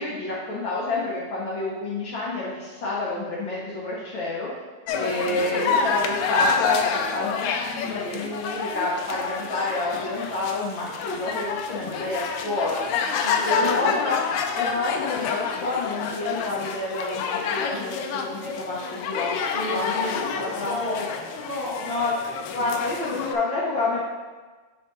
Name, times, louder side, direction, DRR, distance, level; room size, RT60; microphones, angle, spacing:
voice 1, 0.0-4.5 5.0-12.8 13.4-14.2 14.6-19.3 19.7-19.9 20.3-21.1 21.8-22.1 22.5-24.0, left 2 dB, 65° left, -6 dB, 1.2 m, -29 dB
sound 1, 4.9-23.4, left 6 dB, 85° left, 2.0 m, -28 dB
voice 2, 5.2-5.8 13.2-14.0 19.5-21.9, left 1 dB, 35° right, -10 dB, 1.1 m, -32 dB
8.5 x 3.7 x 4.0 m, 1.3 s
omnidirectional pair, 3.4 m